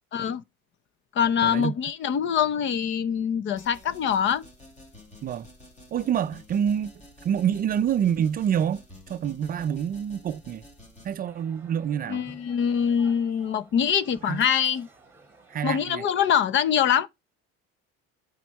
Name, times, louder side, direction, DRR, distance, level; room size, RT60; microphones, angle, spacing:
voice 1, 0.1-0.4 1.1-4.4 12.1-14.9 15.6-17.1, left 8 dB, 40° left, 0.7 m, -24 dB
voice 2, 1.4-1.7 5.2-5.5 5.9-6.9 7.2-8.8 9.1-10.6 11.0-12.3 14.3-14.4 15.5-16.1, right 9 dB, 30° right, 0.4 m, -27 dB
sound 1, 3.6-11.2, left 1 dB, 25° left, 2.9 m, -50 dB
sound 2, 11.2-16.4, right 3 dB, 10° right, 2.2 m, -53 dB
9.2 x 4.4 x 4.6 m
cardioid pair, 150°, 29 cm